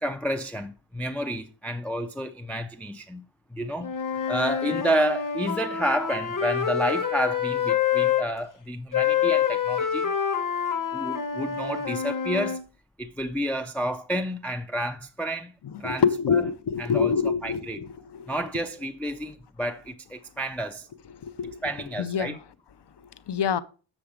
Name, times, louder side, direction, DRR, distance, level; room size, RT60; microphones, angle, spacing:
voice 1, 0.0-3.2 3.5-3.9 4.3-10.1 10.9-12.6 13.0-15.5 15.8-16.5 16.8-17.1 17.4-17.9 18.3-20.9 21.6-22.4, equal, 5° left, 0.4 m, -30 dB
Wind instrument woodwind instrument, 3.8-8.3 8.9-12.6, left 8 dB, 40° left, 1.1 m, -27 dB
voice 2, 15.8-17.9 18.2-18.3 21.2-21.5 22.0-22.4 23.3-23.6, left 6 dB, 60° left, 0.7 m, -25 dB
7.2 x 6.8 x 4.9 m
wide cardioid pair, 170°, 48 cm